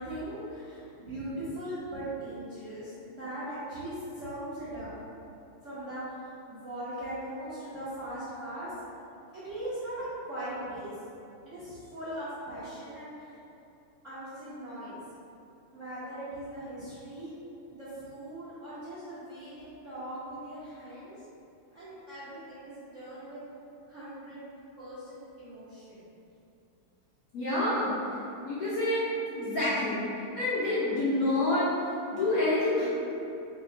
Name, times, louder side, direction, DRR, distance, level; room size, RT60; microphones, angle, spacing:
voice 1, 0.0-4.9 5.6-8.7 9.3-11.0 11.4-13.4 14.0-15.0 15.7-17.3 17.7-21.2 21.7-23.4 23.9-26.1, right 1 dB, 60° right, -12 dB, 0.7 m, -40 dB
voice 2, 27.3-27.9 28.4-29.0 29.3-30.0 30.3-31.7 32.1-32.9, left 2 dB, 60° left, -12 dB, 1.0 m, -27 dB
3.6 x 3.0 x 3.7 m, 2.7 s
omnidirectional pair, 2.4 m